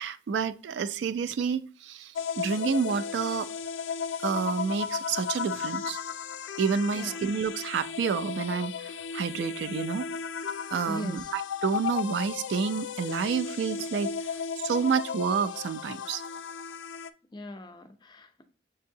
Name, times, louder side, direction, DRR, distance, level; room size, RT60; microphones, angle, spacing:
voice 1, 0.0-3.5 4.2-6.0 6.6-10.1 10.7-14.1 14.6-16.2, right 6 dB, 70° right, 0.3 m, -29 dB
sound 1, 2.1-17.1, left 6 dB, 85° left, 0.3 m, -35 dB
voice 2, 6.9-7.3 10.9-11.3 17.3-18.4, left 1 dB, 25° left, 0.5 m, -39 dB
6.6 x 2.7 x 2.6 m
head